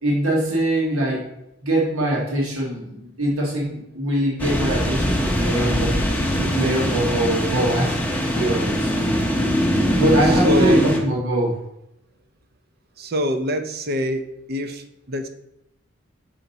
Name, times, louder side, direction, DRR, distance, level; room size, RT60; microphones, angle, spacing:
voice 1, 0.0-1.2 1.6-5.9 6.3-8.0 8.3-8.9 10.0-11.6, right 1 dB, 80° right, -3 dB, 1.6 m, -22 dB
sound 1, 4.4-11.0, equal, 5° left, 0.7 m, -21 dB
voice 2, 10.2-10.8 13.0-14.2 14.5-15.3, equal, 45° right, 7 dB, 0.5 m, -25 dB
5.7 x 5.0 x 4.0 m, 0.82 s
head